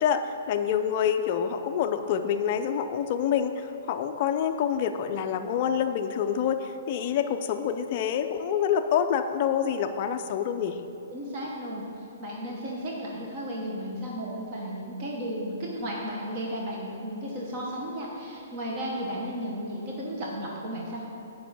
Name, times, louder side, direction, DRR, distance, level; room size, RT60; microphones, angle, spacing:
voice 1, 0.0-10.8, left 8 dB, 30° left, 6 dB, 0.4 m, -27 dB
voice 2, 11.1-11.8 12.2-21.0, equal, 25° right, -3 dB, 1.0 m, -34 dB
9.2 x 5.3 x 6.2 m, 3.0 s
hypercardioid pair, 180°, 0 cm